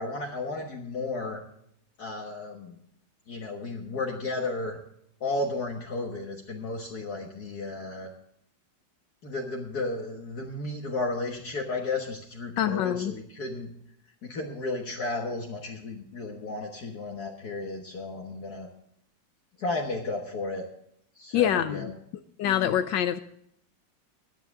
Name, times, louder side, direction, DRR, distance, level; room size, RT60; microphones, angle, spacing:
voice 1, 0.0-1.4 2.0-2.8 3.3-4.8 5.2-8.1 9.2-13.7 14.2-18.7 19.6-20.7 21.2-22.0 22.4-22.7, left 2 dB, 60° left, 0 dB, 1.9 m, -33 dB
voice 2, 12.6-13.1 21.3-21.9 22.4-23.2, left 10 dB, 75° left, 10 dB, 1.3 m, -25 dB
17.5 x 10.5 x 3.6 m, 0.69 s
omnidirectional pair, 2.0 m